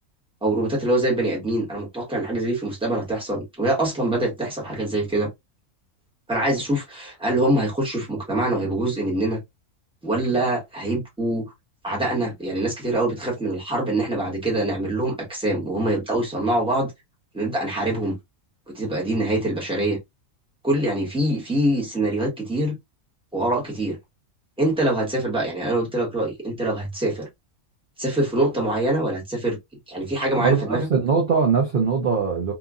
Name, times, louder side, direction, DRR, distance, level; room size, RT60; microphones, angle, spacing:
voice 1, 0.4-5.3 6.3-9.4 10.0-11.5 11.8-16.9 17.3-18.2 18.7-20.0 20.6-22.8 23.3-24.0 24.6-27.3 28.0-29.6 29.9-30.9, right 1 dB, 5° right, 1.1 m, -24 dB
voice 2, 30.4-32.5, right 5 dB, 50° right, 0.8 m, -21 dB
2.9 x 2.4 x 2.3 m
omnidirectional pair, 1.5 m